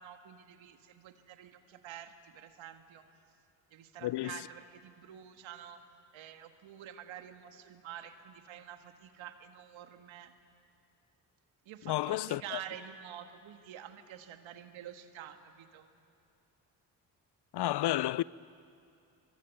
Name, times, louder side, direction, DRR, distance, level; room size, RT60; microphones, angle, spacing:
voice 1, 0.0-3.1 3.7-5.9 6.1-10.4 11.7-15.9, right 10 dB, 70° right, 1.8 m, -48 dB
voice 2, 11.9-12.6 17.5-18.2, left 15 dB, 55° left, 0.6 m, -31 dB
24.0 x 22.5 x 9.3 m
hypercardioid pair, 45°, 49 cm